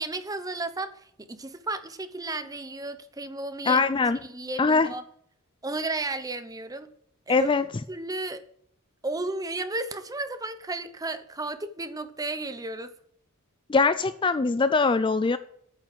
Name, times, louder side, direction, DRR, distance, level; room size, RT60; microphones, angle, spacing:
voice 1, 0.0-3.8 4.2-5.0 5.6-6.9 7.3-7.5 7.9-8.5 9.0-12.9, right 2 dB, 15° right, 0.8 m, -33 dB
voice 2, 3.7-4.2 4.6-4.9 7.3-7.6 13.7-15.4, left 4 dB, 25° left, 0.4 m, -22 dB
9.0 x 7.0 x 7.7 m
head